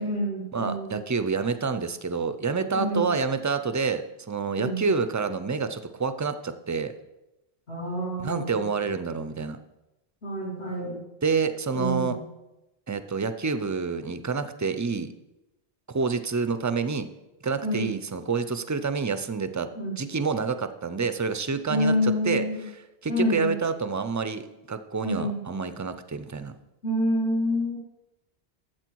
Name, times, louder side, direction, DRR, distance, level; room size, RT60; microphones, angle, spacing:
voice 1, 0.0-1.0 2.7-3.1 4.6-4.8 7.7-8.6 10.2-11.0 11.7-12.1 17.6-18.0 19.7-20.0 21.7-22.7 23.1-23.6 25.0-25.4 26.8-27.8, left 1 dB, 80° left, -4 dB, 3.4 m, -27 dB
voice 2, 0.5-6.9 8.2-9.6 11.2-12.2 12.9-15.1 15.9-17.1 17.4-19.7 20.0-22.4 23.0-26.5, right 5 dB, 25° right, 11 dB, 0.4 m, -28 dB
12.0 x 7.6 x 4.6 m, 0.98 s
omnidirectional pair, 1.0 m